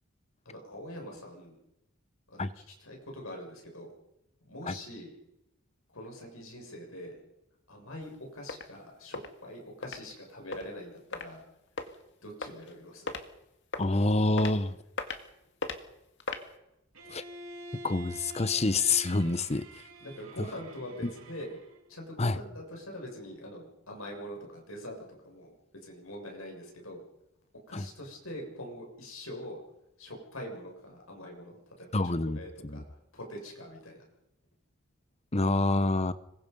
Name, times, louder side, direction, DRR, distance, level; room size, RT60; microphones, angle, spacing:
voice 1, 0.4-1.6 2.3-3.9 4.4-5.1 5.9-7.2 7.7-11.4 12.2-13.1 20.0-21.5 21.9-25.5 25.8-27.0 27.7-29.6 30.0-34.0, equal, 85° left, 6.7 m, -44 dB
sound 1, 8.0-8.1 8.5-8.7 9.1-9.3 9.8-10.0 10.5-10.6 11.1-11.3 11.8-12.0 12.4-12.7 13.1-13.2 13.7-13.9 14.4-14.5 15.0-15.2 15.6-15.8 16.2-16.5, left 3 dB, 55° left, 2.1 m, -35 dB
voice 2, 13.8-14.8 17.1-17.2 17.8-19.7 22.2-22.4 27.7-27.8 31.9-32.8 35.3-36.1, left 2 dB, 30° left, 1.0 m, -27 dB
Bowed string instrument, 16.9-21.9, right 1 dB, 80° right, 3.5 m, -47 dB
26.5 x 23.0 x 5.4 m
head